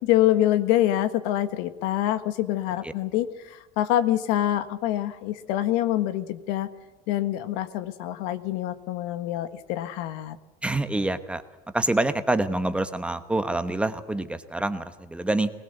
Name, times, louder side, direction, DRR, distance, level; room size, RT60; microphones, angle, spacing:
voice 1, 0.0-6.7 7.1-10.4, left 13 dB, 75° left, 11 dB, 1.5 m, -25 dB
voice 2, 10.6-11.4 11.7-15.5, right 2 dB, 5° right, 9 dB, 1.1 m, -26 dB
20.5 x 20.0 x 8.0 m, 1.2 s
cardioid pair, 140°, 17 cm